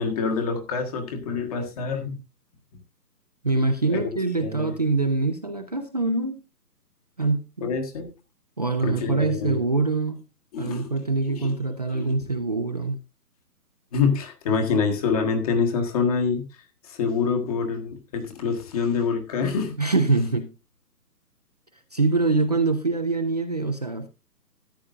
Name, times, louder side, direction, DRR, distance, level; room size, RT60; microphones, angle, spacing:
voice 1, 0.0-2.2 3.9-4.0 4.4-4.7 7.6-8.1 8.8-9.6 10.5-10.9 11.3-11.6 11.9-12.1 13.9-16.4 16.8-19.8, left 5 dB, 20° left, 1.6 m, -26 dB
voice 2, 3.4-6.4 7.2-7.7 8.6-10.2 10.6-13.0 19.8-20.5 21.9-24.1, right 3 dB, 25° right, 0.6 m, -24 dB
14.0 x 9.6 x 2.6 m
figure-of-eight pair, 150°, 49 cm